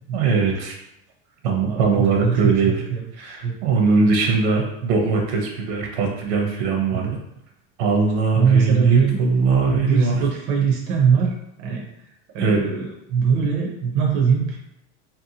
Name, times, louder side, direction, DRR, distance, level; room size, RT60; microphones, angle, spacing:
voice 1, 0.1-0.7 1.4-2.7 3.2-7.2 7.8-10.2 12.4-12.6, right 4 dB, 75° right, 1 dB, 0.8 m, -21 dB
voice 2, 1.6-3.5 6.9-7.2 8.3-9.2 9.7-11.8 12.3-14.6, right 6 dB, 45° right, -1 dB, 0.6 m, -21 dB
2.7 x 2.1 x 2.7 m, 0.82 s
supercardioid pair, 155°, 34 cm